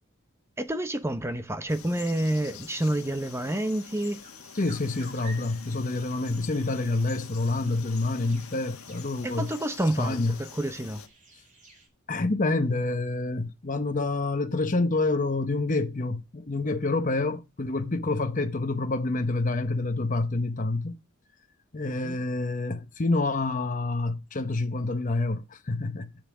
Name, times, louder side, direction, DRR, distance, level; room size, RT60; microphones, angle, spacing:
voice 1, 0.6-4.2 9.2-11.0 21.9-22.2, right 1 dB, 10° right, 0.9 m, -29 dB
Frog, 1.7-11.1, left 8 dB, 80° left, 1.5 m, -46 dB
sound 1, 3.2-11.9, right 2 dB, 35° right, 6.4 m, -53 dB
voice 2, 4.5-9.5 10.0-10.4 12.1-21.0 21.7-26.1, left 2 dB, 35° left, 0.9 m, -27 dB
11.0 x 8.0 x 5.0 m
head